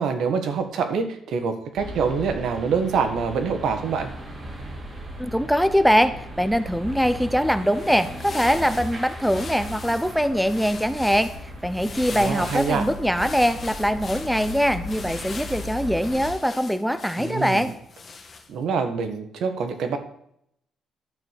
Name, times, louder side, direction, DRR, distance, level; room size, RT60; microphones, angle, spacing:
voice 1, 0.0-4.1 12.1-12.8 17.2-17.7 18.5-20.0, right 5 dB, 75° right, 7 dB, 1.5 m, -25 dB
sound 1, 1.8-16.3, equal, 35° right, 2.9 m, -37 dB
voice 2, 5.2-11.3 11.6-17.7, equal, ahead, 12 dB, 0.7 m, -22 dB
sound 2, 7.6-18.6, left 4 dB, 40° left, 1.9 m, -40 dB
11.5 x 4.8 x 7.5 m, 0.72 s
cardioid pair, 90°, 0 cm